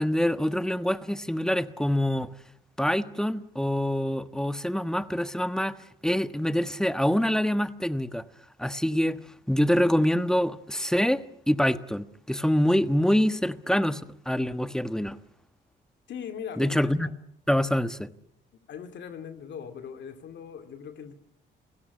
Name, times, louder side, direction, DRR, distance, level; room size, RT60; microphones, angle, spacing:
voice 1, 0.0-2.3 2.8-5.8 6.0-8.2 8.6-9.2 9.5-15.2 16.6-17.1 17.5-18.1, equal, 5° left, 1.3 m, -25 dB
voice 2, 16.1-16.9 18.7-21.1, left 7 dB, 65° left, 2.5 m, -39 dB
29.0 x 17.0 x 9.6 m
cardioid pair, 90°, 20 cm